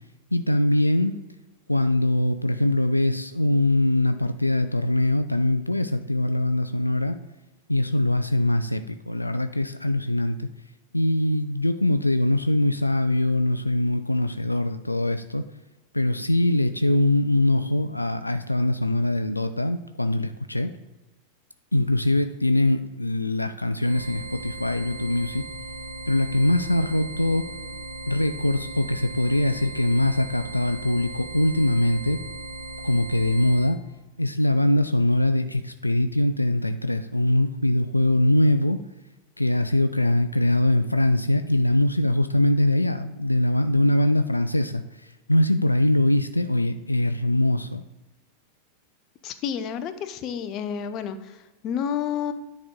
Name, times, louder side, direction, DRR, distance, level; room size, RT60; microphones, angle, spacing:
voice 1, 0.3-1.1 1.7-7.2 7.7-10.5 10.9-15.4 15.9-20.7 21.7-25.4 26.1-27.4 28.1-32.2 32.8-33.8 34.2-38.8 39.4-44.8 45.3-47.8, left 1 dB, 85° left, 9 dB, 0.3 m, -22 dB
sound 1, 23.8-33.7, right 2 dB, 80° right, 1.0 m, -37 dB
voice 2, 49.2-52.3, left 8 dB, 35° left, 10 dB, 0.6 m, -30 dB
9.9 x 4.2 x 3.7 m, 1.1 s
figure-of-eight pair, 90°, 0 cm